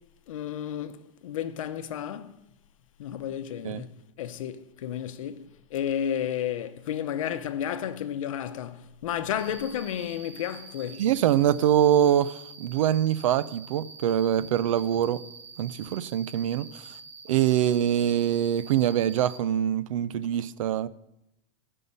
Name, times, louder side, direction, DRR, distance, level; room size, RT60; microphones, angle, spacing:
voice 1, 0.3-2.3 3.0-11.0, left 9 dB, 90° left, 0.8 m, -32 dB
Cricket, 9.4-19.4, right 4 dB, 60° right, 1.6 m, -46 dB
voice 2, 11.0-15.2 15.6-16.8 17.3-20.9, right 10 dB, 85° right, 0.5 m, -24 dB
15.0 x 5.5 x 5.4 m
supercardioid pair, 165°, 17 cm